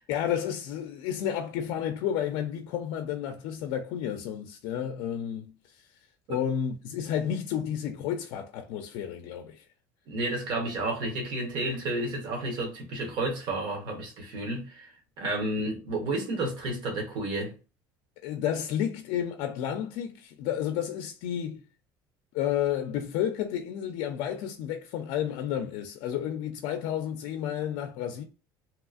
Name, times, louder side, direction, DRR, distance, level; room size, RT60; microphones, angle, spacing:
voice 1, 0.1-5.9 6.3-9.6 18.2-21.6 22.3-28.2, left 9 dB, 75° left, 0.4 m, -31 dB
voice 2, 10.1-14.9 15.2-17.5, right 2 dB, 60° right, 1.1 m, -31 dB
2.9 x 2.4 x 2.4 m
cardioid pair, 140°, 9 cm